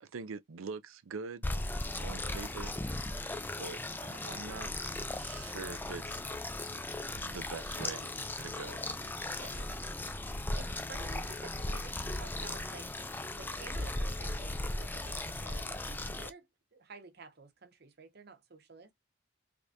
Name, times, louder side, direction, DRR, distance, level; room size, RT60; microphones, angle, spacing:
voice 1, 0.0-1.4 2.0-2.7 3.6-4.7 5.1-6.2 7.2-8.1 8.4-8.9 9.4-9.8, right 4 dB, 85° right, 0.5 m, -44 dB
sound 1, 1.4-16.3, left 2 dB, 10° left, 0.4 m, -37 dB
voice 2, 10.6-12.9 13.4-16.5 16.7-18.9, right 4 dB, 50° right, 0.9 m, -52 dB
4.8 x 3.4 x 2.7 m
head